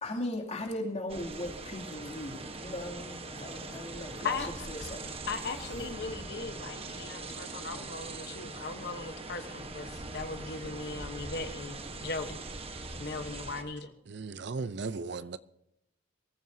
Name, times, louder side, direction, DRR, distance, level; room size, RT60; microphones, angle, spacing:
voice 1, 0.0-5.1, left 1 dB, 35° left, 2.7 m, -38 dB
sound 1, 1.1-13.6, right 3 dB, 30° right, 1.2 m, -42 dB
voice 2, 4.2-4.5 5.3-12.4 13.0-13.9, left 4 dB, 60° left, 1.1 m, -38 dB
voice 3, 14.1-15.4, right 4 dB, 60° right, 0.6 m, -36 dB
23.5 x 14.0 x 2.8 m
head